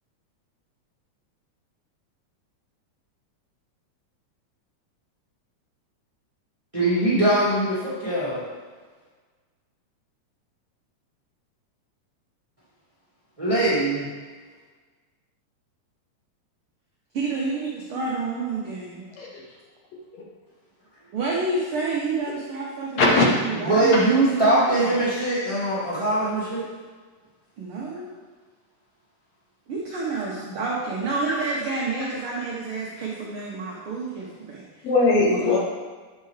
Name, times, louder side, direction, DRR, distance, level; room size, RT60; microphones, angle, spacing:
voice 1, 6.7-8.5 13.4-14.1 23.6-26.6 30.1-30.2 31.3-31.4, right 2 dB, 20° right, -9 dB, 0.9 m, -22 dB
voice 2, 17.1-19.1 21.1-24.0 24.3-25.0 27.6-28.1 29.7-34.6 35.3-35.6, right 3 dB, 80° right, -4 dB, 1.2 m, -29 dB
voice 3, 23.0-23.4 23.9-24.1 34.8-35.6, left 2 dB, 70° left, -2 dB, 1.8 m, -19 dB
8.2 x 5.6 x 3.2 m, 1.5 s
omnidirectional pair, 3.5 m